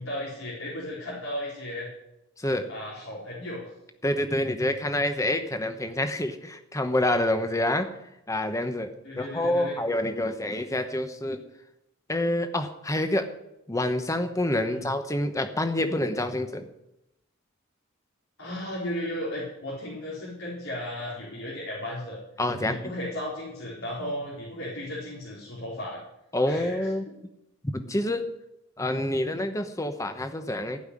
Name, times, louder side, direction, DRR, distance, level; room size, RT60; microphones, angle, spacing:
voice 1, 0.0-1.9 2.7-3.7 9.0-9.8 14.7-14.9 18.4-22.2 22.7-26.0 26.5-26.9, left 1 dB, 80° left, -7 dB, 4.4 m, -35 dB
voice 2, 2.4-2.7 4.0-7.9 8.3-8.9 9.2-11.4 12.1-13.3 13.7-16.7 22.4-22.8 26.3-27.0 27.7-28.2 28.8-30.8, left 1 dB, 15° left, 8 dB, 1.1 m, -27 dB
16.0 x 5.7 x 9.9 m, 0.86 s
head